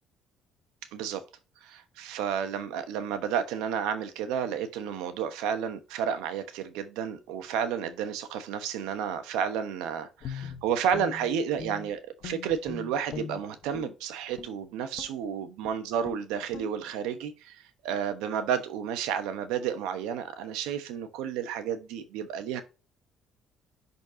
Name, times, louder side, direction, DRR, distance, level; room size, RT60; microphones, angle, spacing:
voice 1, 1.6-22.6, right 8 dB, 90° right, 1.0 m, -31 dB
Guitar, 10.2-11.9 12.2-13.9 14.3-14.6 14.9-15.2 15.6-15.8 16.0-16.2 16.5-16.7, left 7 dB, 65° left, 1.1 m, -41 dB
10.5 x 4.2 x 2.8 m
cardioid pair, 90°, 0 cm